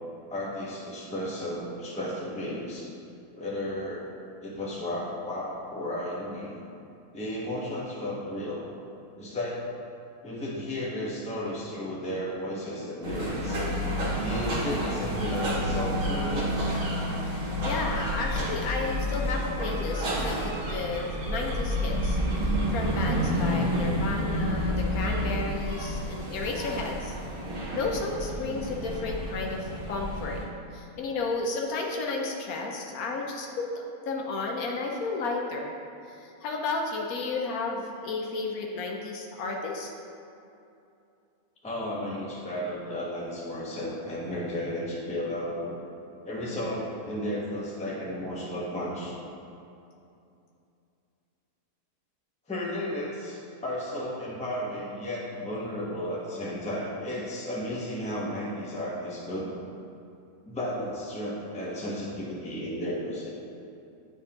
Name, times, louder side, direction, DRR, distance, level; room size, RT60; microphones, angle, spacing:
voice 1, 0.3-2.9 3.4-4.1 4.4-6.6 7.1-8.7 9.2-9.6 10.2-13.7 14.2-16.8 28.5-28.7 41.6-45.8 46.2-49.1 52.5-59.5 60.4-63.3, left 1 dB, 5° left, -5 dB, 0.6 m, -33 dB
sound 1, 13.0-30.4, equal, 60° right, 1.8 m, -29 dB
voice 2, 17.6-27.2 27.7-30.4 30.7-33.7 34.0-35.7 36.1-39.9 46.4-46.7, left 3 dB, 75° left, 0 dB, 1.1 m, -32 dB
10.0 x 3.6 x 2.8 m, 2.6 s
omnidirectional pair, 1.6 m